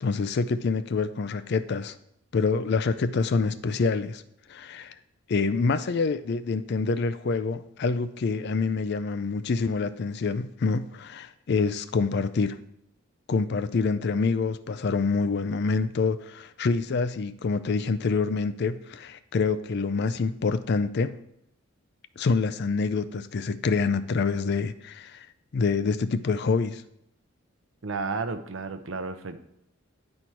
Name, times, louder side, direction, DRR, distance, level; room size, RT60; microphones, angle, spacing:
voice 1, 0.0-1.9 2.3-4.2 4.5-4.9 5.3-12.6 13.3-21.2 22.2-25.3 25.5-26.8, left 4 dB, 55° left, 12 dB, 0.4 m, -26 dB
voice 2, 27.8-29.4, right 4 dB, 65° right, 9 dB, 0.6 m, -32 dB
9.9 x 4.4 x 4.6 m, 0.77 s
head